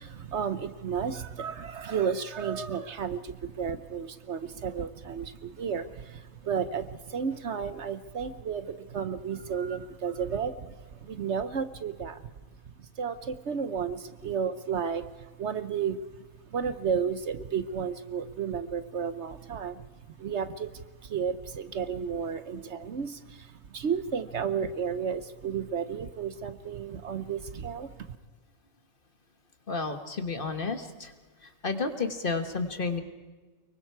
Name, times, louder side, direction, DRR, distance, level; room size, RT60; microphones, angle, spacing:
voice 1, 0.0-12.2 12.8-16.0 16.5-19.9 20.2-28.2, right 7 dB, 60° right, 12 dB, 1.1 m, -33 dB
voice 2, 29.7-31.1 31.4-33.0, left 4 dB, 40° left, 7 dB, 1.7 m, -32 dB
24.5 x 23.0 x 4.7 m, 1.4 s
omnidirectional pair, 1.4 m